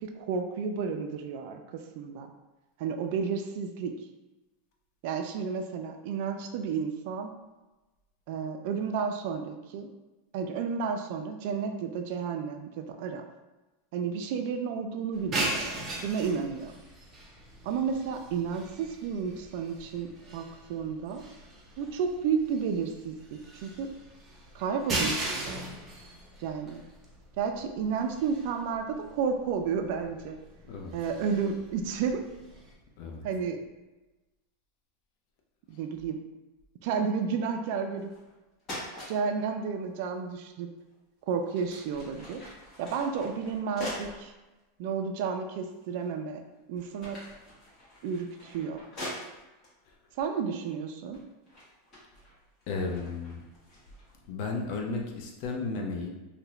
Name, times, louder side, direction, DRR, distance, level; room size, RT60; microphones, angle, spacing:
voice 1, 0.0-2.3 2.8-3.9 5.0-7.3 8.3-9.9 10.3-13.2 13.9-15.6 16.0-16.8 17.6-21.2 21.8-23.9 24.5-25.5 26.4-26.8 27.4-30.4 30.9-32.2 33.2-33.6 35.7-36.2 36.8-38.1 39.1-40.7 41.3-42.4 42.8-44.3 44.8-46.4 46.7-47.2 48.0-48.8 50.2-51.2, right 6 dB, 60° right, 6 dB, 0.4 m, -32 dB
sound 1, 15.1-32.7, right 2 dB, 25° right, 0.6 m, -39 dB
voice 2, 30.6-31.0 31.2-31.3 33.0-33.2 52.7-53.4 54.2-56.1, left 3 dB, 55° left, 1 dB, 0.6 m, -34 dB
sound 2, 38.0-38.3 38.6-39.1 40.8-40.9 41.4-44.2 44.9-45.0 45.7-46.2 46.5-49.7 50.5-50.8 51.1-54.1, left 1 dB, 30° left, 1.3 m, -43 dB
2.8 x 2.4 x 3.1 m, 1.1 s
supercardioid pair, 140°, 0 cm